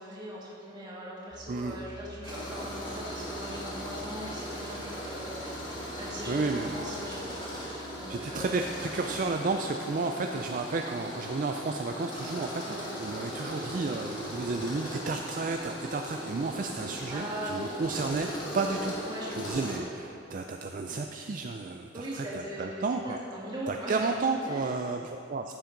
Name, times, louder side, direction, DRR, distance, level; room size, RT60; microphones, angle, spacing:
voice 1, 0.0-8.7 12.7-12.9 17.1-17.8 19.1-19.6 21.9-24.1 24.5-24.7, equal, 25° right, -6 dB, 2.2 m, -40 dB
sound 1, 1.3-9.0, right 2 dB, 70° right, 2.7 m, -50 dB
voice 2, 1.5-1.8 6.3-6.8 7.3-7.4 8.1-18.3 18.5-18.9 19.4-23.2 23.7-25.5, right 3 dB, 45° right, 4 dB, 0.4 m, -32 dB
Tools, 2.2-19.8, equal, 25° left, 2.1 m, -39 dB
14.5 x 7.2 x 3.9 m, 2.8 s
head